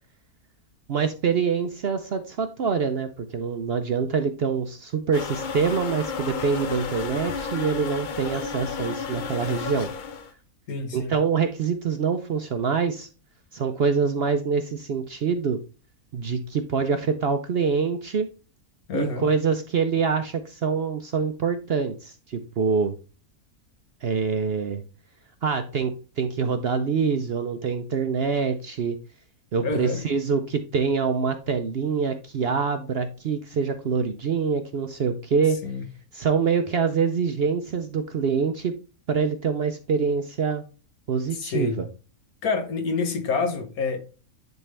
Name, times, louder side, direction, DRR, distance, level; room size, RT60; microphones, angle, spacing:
voice 1, 0.9-9.9 10.9-13.1 13.5-15.6 16.1-18.3 18.9-22.9 24.0-24.8 25.4-29.0 29.5-35.6 36.1-38.7 39.1-40.6 41.1-41.9, right 5 dB, 55° right, 0.7 m, -25 dB
sound 1, 5.1-10.3, left 5 dB, 50° left, 0.6 m, -32 dB
voice 2, 10.7-11.1 18.9-19.3 29.6-30.0 35.6-35.9 41.4-41.8 42.4-44.0, left 4 dB, 75° left, 1.7 m, -27 dB
10.5 x 3.6 x 3.3 m
omnidirectional pair, 1.6 m